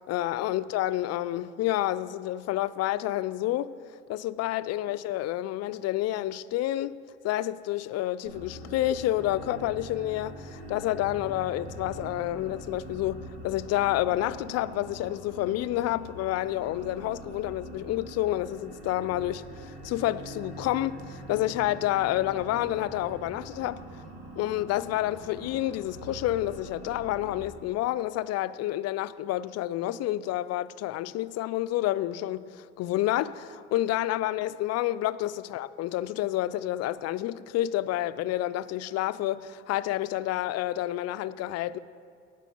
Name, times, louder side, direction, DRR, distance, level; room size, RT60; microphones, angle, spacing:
voice 1, 0.1-3.7 4.1-23.8 24.4-41.8, left 14 dB, 55° left, 0.5 m, -29 dB
sound 1, 8.2-27.4, right 1 dB, 85° right, 2.0 m, -44 dB
17.5 x 6.2 x 4.4 m
hypercardioid pair, 60°, 30 cm